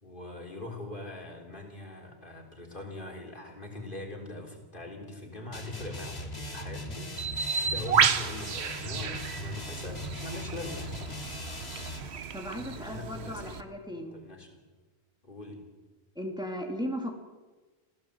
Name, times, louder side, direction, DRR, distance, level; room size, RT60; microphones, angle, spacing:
voice 1, 0.0-11.1 12.5-13.6 14.1-14.6 15.2-15.7, left 2 dB, 55° left, 1 dB, 3.8 m, -42 dB
sound 1, 5.5-12.1, left 1 dB, 80° left, 3.1 m, -39 dB
Bird, 7.2-13.6, right 6 dB, 85° right, 1.3 m, -31 dB
voice 2, 12.3-14.1 16.2-17.2, equal, 5° right, 1 dB, 2.7 m, -36 dB
26.5 x 15.5 x 8.1 m, 1.3 s
omnidirectional pair, 1.1 m